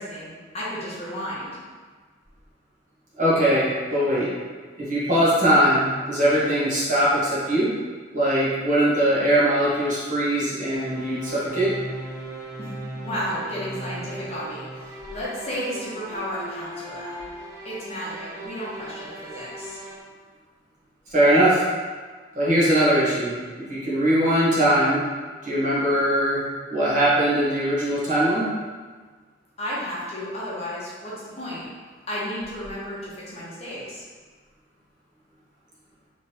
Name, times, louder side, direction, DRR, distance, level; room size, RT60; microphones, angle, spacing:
voice 1, 0.0-1.6 12.6-12.7 13.0-17.2 17.6-19.8 29.6-31.7 32.1-34.0, equal, 35° left, -7 dB, 0.8 m, -33 dB
voice 2, 3.2-4.3 4.8-7.7 8.1-11.7 21.1-21.6 22.3-25.0 25.4-26.4 26.7-28.5, right 1 dB, 40° right, -8 dB, 1.0 m, -21 dB
sound 1, 10.7-20.0, right 1 dB, 20° right, 0.7 m, -37 dB
3.4 x 3.1 x 2.8 m, 1.5 s
head